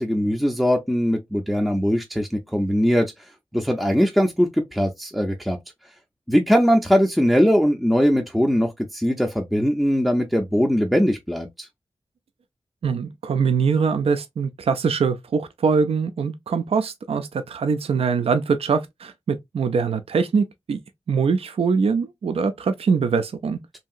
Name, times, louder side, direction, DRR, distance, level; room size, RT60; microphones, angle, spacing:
voice 1, 0.0-3.1 3.5-5.6 6.3-11.7, equal, ahead, 0.4 m, -20 dB
voice 2, 12.8-20.8 21.1-23.6, right 5 dB, 70° right, 0.4 m, -23 dB
2.7 x 2.7 x 2.4 m
wide cardioid pair, 70°, 10 cm